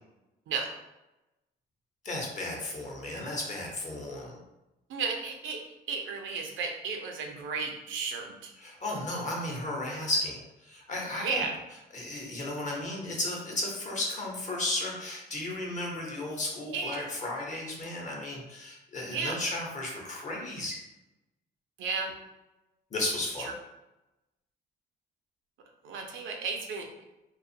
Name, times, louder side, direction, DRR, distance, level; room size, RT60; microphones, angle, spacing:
voice 1, 2.0-4.4 8.6-11.5 11.9-20.8 22.9-23.5, left 2 dB, 35° left, -2 dB, 0.8 m, -34 dB
voice 2, 4.9-8.5 11.2-11.5 16.7-17.1 19.1-19.4 21.8-22.1 25.8-26.9, right 4 dB, 80° right, 2 dB, 0.5 m, -33 dB
2.5 x 2.3 x 2.7 m, 0.97 s
cardioid pair, 90°, 20 cm